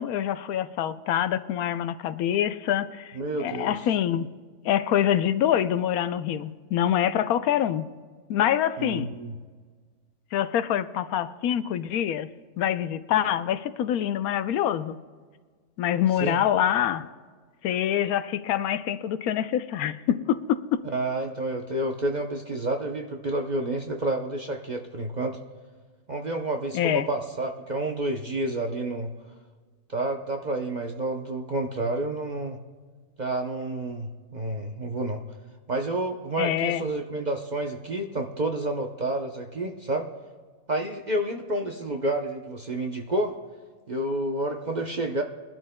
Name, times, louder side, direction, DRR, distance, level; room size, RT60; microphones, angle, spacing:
voice 1, 0.0-4.3 4.6-7.9 8.3-9.1 10.3-12.3 12.6-15.0 15.8-17.0 17.6-20.8 26.7-27.1 36.4-36.8, left 10 dB, 80° left, 1.1 m, -25 dB
voice 2, 3.1-3.7 8.8-9.4 16.2-16.4 20.9-25.4 26.1-29.1 29.9-32.6 33.2-35.2 35.7-40.1 40.7-43.4 43.9-45.2, right 1 dB, 40° right, 0.7 m, -29 dB
23.0 x 12.0 x 2.2 m
omnidirectional pair, 1.5 m